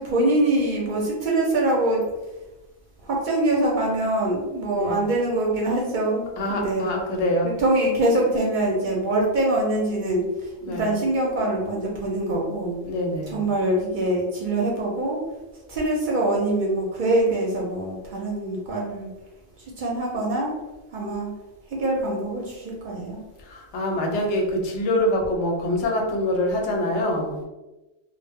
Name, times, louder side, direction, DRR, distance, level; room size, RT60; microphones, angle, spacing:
voice 1, 0.0-2.0 3.0-6.9 7.4-12.8 13.3-15.2 15.7-19.1 19.8-20.5 20.9-21.3 21.7-23.2, right 1 dB, 55° right, -2 dB, 0.6 m, -24 dB
voice 2, 4.7-5.1 6.4-7.5 10.6-11.0 12.8-13.5 23.4-27.4, left 1 dB, 85° left, 1 dB, 0.9 m, -25 dB
2.0 x 2.0 x 3.3 m, 1.1 s
omnidirectional pair, 1.1 m